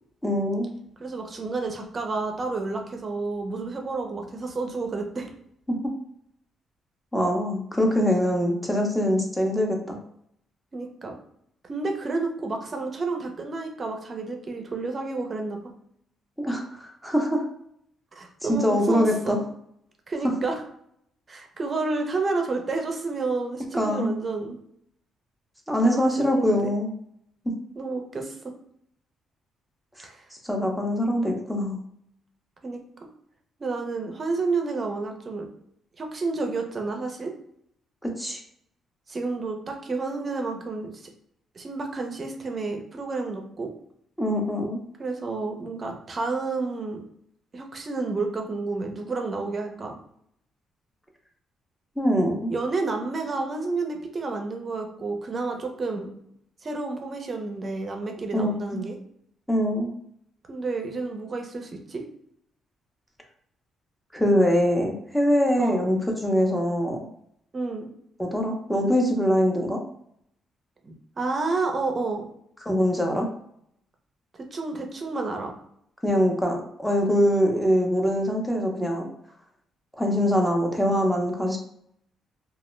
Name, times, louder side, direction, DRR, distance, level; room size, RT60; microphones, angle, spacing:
voice 1, 0.2-0.7 5.7-5.8 7.1-10.0 16.4-17.4 18.5-19.4 23.7-24.2 25.7-26.9 30.0-30.1 30.4-31.8 38.0-38.4 44.2-44.8 52.0-52.5 58.3-58.8 59.5-59.9 64.1-67.0 68.2-69.8 72.7-73.3 76.0-79.1 80.0-81.6, equal, 5° left, 1 dB, 0.6 m, -23 dB
voice 2, 1.0-5.3 10.7-11.1 11.6-15.6 18.1-19.4 20.1-20.6 21.3-24.6 25.8-26.7 27.7-28.5 30.0-30.2 31.2-31.3 32.6-33.1 33.6-35.5 36.0-37.3 39.1-41.1 41.6-43.7 45.0-47.0 47.5-49.9 52.5-56.1 56.6-59.0 60.5-62.0 65.6-65.9 67.5-67.9 70.8-72.3 74.5-75.5, right 3 dB, 35° right, 3 dB, 0.5 m, -30 dB
2.3 x 2.0 x 3.1 m, 0.71 s
cardioid pair, 90°, 0 cm